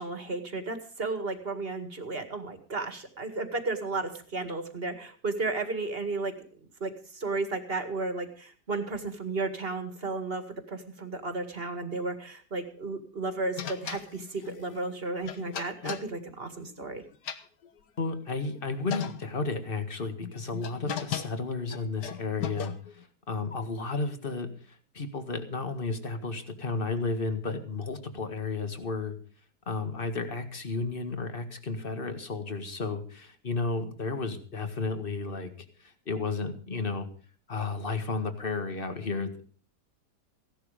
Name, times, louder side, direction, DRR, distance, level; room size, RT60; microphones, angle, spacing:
voice 1, 0.0-6.3 6.8-17.0, right 3 dB, 35° right, 8 dB, 2.1 m, -33 dB
sound 1, 13.6-16.9 17.1-18.2 18.6-18.7 18.9-19.5 20.2-23.0, left 8 dB, 80° left, 1.7 m, -37 dB
voice 2, 18.0-29.2 29.7-35.5 35.8-37.1 37.5-39.4, left 3 dB, 35° left, 8 dB, 1.9 m, -33 dB
16.0 x 11.5 x 5.1 m, 0.42 s
omnidirectional pair, 1.8 m